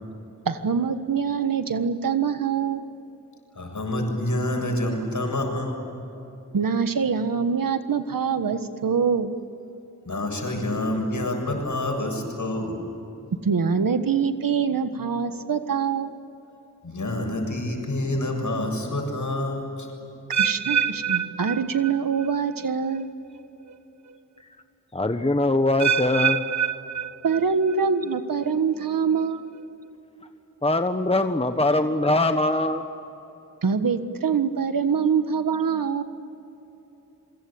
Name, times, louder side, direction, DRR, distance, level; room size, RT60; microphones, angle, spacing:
voice 1, 0.4-2.8 6.5-9.3 13.4-16.1 20.4-23.1 27.2-29.5 33.6-36.0, right 6 dB, 85° right, 9 dB, 1.5 m, -24 dB
voice 2, 3.5-5.8 10.1-12.8 16.8-19.9, left 1 dB, 65° left, 3 dB, 7.4 m, -27 dB
sound 1, 20.3-22.3 22.6-23.0 23.7-23.8 25.8-27.8 28.1-28.5 29.2-29.3, right 8 dB, 60° right, 1.2 m, -26 dB
voice 3, 24.9-26.4 30.6-32.8, left 2 dB, 20° left, 7 dB, 1.3 m, -22 dB
27.5 x 24.0 x 8.7 m, 3.0 s
cardioid pair, 50°, 33 cm